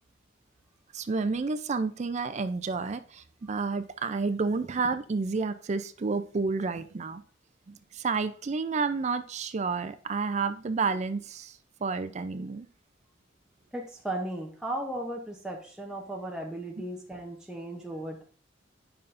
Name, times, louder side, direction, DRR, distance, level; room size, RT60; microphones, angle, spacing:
voice 1, 0.9-7.2 7.7-12.7, right 4 dB, 40° right, 11 dB, 0.4 m, -30 dB
voice 2, 13.7-18.2, right 1 dB, 5° right, -1 dB, 0.7 m, -36 dB
8.8 x 5.5 x 2.5 m, 0.44 s
head